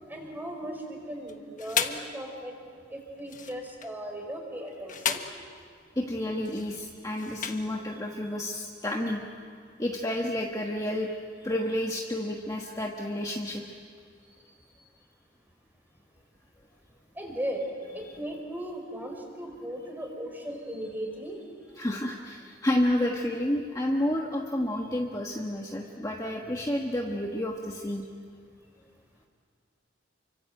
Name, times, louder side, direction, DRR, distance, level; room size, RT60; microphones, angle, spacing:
voice 1, 0.1-2.5 2.9-5.2 7.9-8.0 14.2-14.3 14.7-14.8 17.1-17.6 17.9-21.4, right 1 dB, 10° right, 2 dB, 4.9 m, -37 dB
sound 1, 1.3-2.1 3.2-4.0 4.7-5.5 6.4-7.8, left 7 dB, 40° left, 1.4 m, -34 dB
voice 2, 6.0-9.2 9.8-11.2 11.4-13.6 18.0-18.1 21.8-28.0, left 1 dB, 20° left, 0 dB, 1.4 m, -30 dB
29.0 x 25.0 x 8.0 m, 2.2 s
head